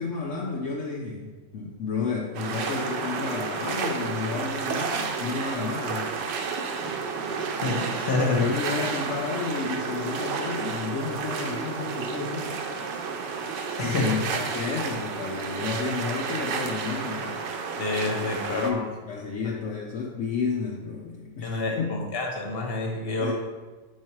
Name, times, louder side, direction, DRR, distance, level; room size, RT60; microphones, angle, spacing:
voice 1, 0.0-6.2 8.3-12.6 13.8-17.4 18.5-22.0 23.2-23.3, left 4 dB, 60° left, -3 dB, 0.8 m, -31 dB
sound 1, 2.3-18.7, right 5 dB, 80° right, 1.3 m, -31 dB
voice 2, 7.6-8.4 13.8-14.0 17.8-18.8 21.4-23.3, left 3 dB, 40° left, 0 dB, 1.1 m, -28 dB
5.5 x 4.8 x 4.4 m, 1.3 s
omnidirectional pair, 1.9 m